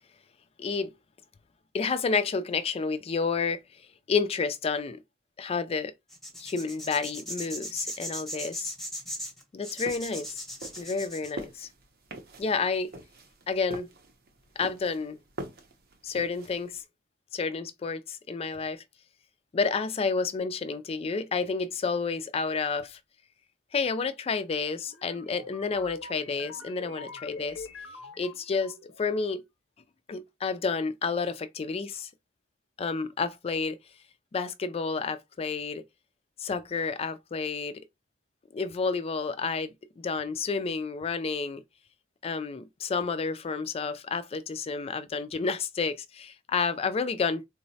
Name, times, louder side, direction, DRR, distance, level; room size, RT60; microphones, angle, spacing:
voice 1, 0.6-0.9 1.7-3.6 4.1-5.0 5.4-5.9 6.4-8.7 9.5-10.4 10.8-11.7 12.4-12.9 13.5-13.9 14.6-15.2 16.0-16.8 17.3-18.8 19.5-23.0 23.7-27.7 28.2-29.4 30.1-32.1 32.8-33.8 34.3-35.9 36.4-37.8 38.5-41.6 42.2-47.5, left 4 dB, 30° left, 0.3 m, -30 dB
sound 1, 6.1-11.3, equal, ahead, 0.8 m, -38 dB
sound 2, 9.9-16.8, right 2 dB, 50° right, 0.6 m, -44 dB
sound 3, 24.9-29.1, left 3 dB, 90° left, 0.7 m, -44 dB
3.8 x 2.0 x 2.7 m
head